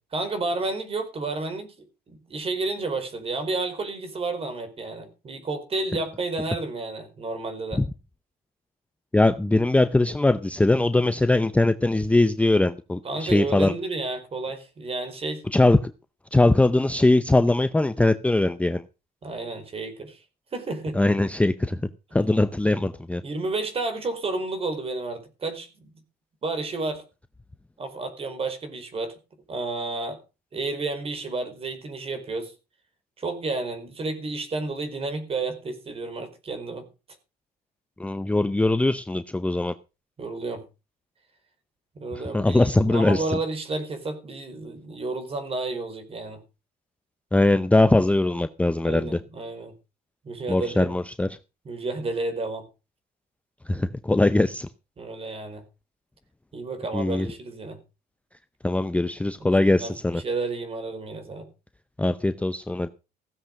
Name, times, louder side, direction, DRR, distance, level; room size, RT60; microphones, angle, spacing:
voice 1, 0.1-1.7 2.1-7.8 13.0-15.4 19.2-20.2 20.5-21.0 23.2-25.9 26.4-27.0 27.8-29.1 29.5-30.2 30.5-32.5 33.2-36.9 40.2-40.6 41.9-46.4 48.8-49.7 50.2-50.9 51.6-52.7 55.0-55.6 56.5-57.8 59.4-61.5, right 3 dB, 35° right, 4.6 m, -31 dB
voice 2, 9.1-13.7 15.5-15.8 16.3-18.8 20.9-21.8 22.1-23.2 38.0-39.7 42.3-43.4 47.3-49.2 50.5-51.3 53.7-54.7 56.9-57.3 58.6-60.2 62.0-62.9, left 2 dB, 10° left, 0.6 m, -21 dB
16.0 x 7.2 x 6.4 m
cardioid pair, 110°, 17 cm